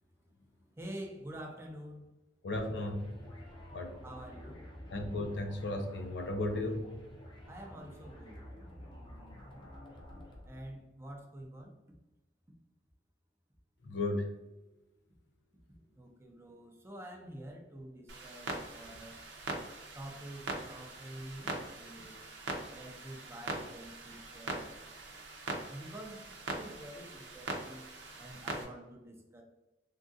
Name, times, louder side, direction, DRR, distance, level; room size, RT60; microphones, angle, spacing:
voice 1, 0.8-2.1 4.0-4.6 7.5-8.4 10.4-11.7 16.0-19.2 19.9-22.2 22.7-24.7 25.7-27.9 28.2-29.4, right 1 dB, 15° right, 1 dB, 0.5 m, -47 dB
voice 2, 2.4-3.2 3.7-3.9 4.9-7.0 13.8-14.3, left 2 dB, 80° left, 5 dB, 0.5 m, -35 dB
sound 1, 2.5-10.8, equal, 30° left, 0.6 m, -50 dB
Clock, 18.1-28.6, right 2 dB, 85° right, 0.6 m, -42 dB
3.5 x 2.3 x 2.6 m, 0.98 s
head